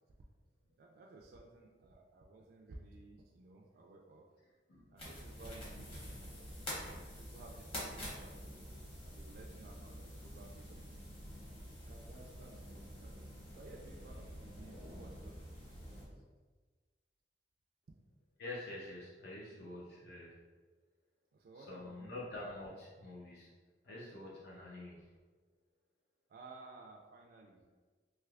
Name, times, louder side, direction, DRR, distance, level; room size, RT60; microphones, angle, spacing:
voice 1, 0.6-4.3 4.9-11.1 11.9-16.2 21.3-22.3 26.3-27.6, right 2 dB, 55° right, -1 dB, 0.3 m, -56 dB
sound 1, 5.0-16.0, equal, 30° left, 1.1 m, -48 dB
voice 2, 18.4-20.4 21.6-23.5 23.8-25.1, left 2 dB, 65° left, -5 dB, 0.6 m, -47 dB
3.3 x 2.9 x 2.3 m, 1.4 s
head